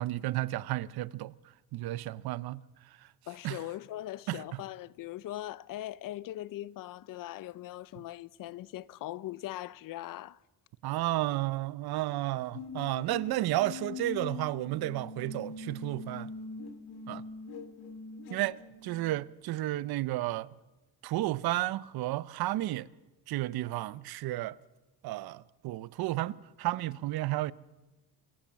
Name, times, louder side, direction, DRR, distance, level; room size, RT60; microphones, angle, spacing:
voice 1, 0.0-1.3 1.7-2.6 3.4-3.6 4.3-4.6 10.8-16.3 17.1-17.2 18.3-20.5 21.0-22.9 23.3-24.6 25.0-27.5, right 16 dB, 80° right, 0.8 m, -32 dB
voice 2, 3.3-10.4, left 14 dB, 60° left, 0.7 m, -40 dB
sound 1, 12.5-19.2, left 4 dB, 90° left, 2.3 m, -43 dB
26.0 x 14.5 x 7.5 m
cardioid pair, 160°, 37 cm